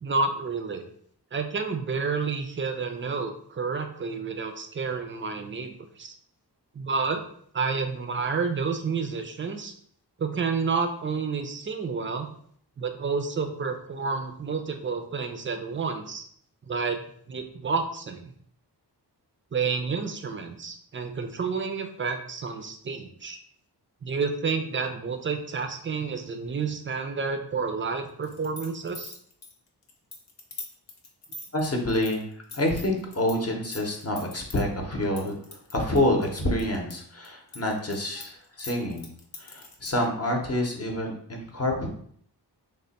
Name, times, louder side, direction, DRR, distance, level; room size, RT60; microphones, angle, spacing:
voice 1, 0.0-0.8 1.3-6.2 6.7-7.2 7.5-9.7 10.2-12.3 12.8-16.3 16.7-17.0 17.3-18.3 19.5-23.4 24.0-29.1, right 5 dB, 30° right, 6 dB, 0.4 m, -30 dB
sound 1, 28.2-33.4 33.6-34.6 35.2-36.9 37.3-40.1, left 3 dB, 80° left, 0.8 m, -42 dB
voice 2, 31.5-39.1 39.4-41.9, left 1 dB, 35° left, 1 dB, 0.7 m, -27 dB
3.3 x 2.1 x 4.0 m, 0.62 s
wide cardioid pair, 90°, 42 cm